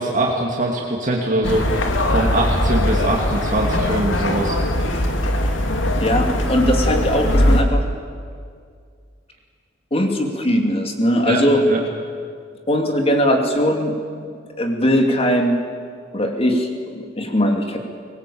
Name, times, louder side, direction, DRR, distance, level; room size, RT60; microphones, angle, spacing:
voice 1, 0.0-1.6 2.1-4.6 11.2-11.4 11.7-11.8, right 1 dB, 45° right, -1 dB, 2.6 m, -22 dB
sound 1, 1.4-7.6, left 1 dB, 85° left, 2.4 m, -20 dB
voice 2, 5.9-7.8 9.9-11.6 12.7-13.9 14.6-15.6 16.1-17.8, equal, 30° left, 4 dB, 2.8 m, -19 dB
23.0 x 20.0 x 8.7 m, 2.1 s
head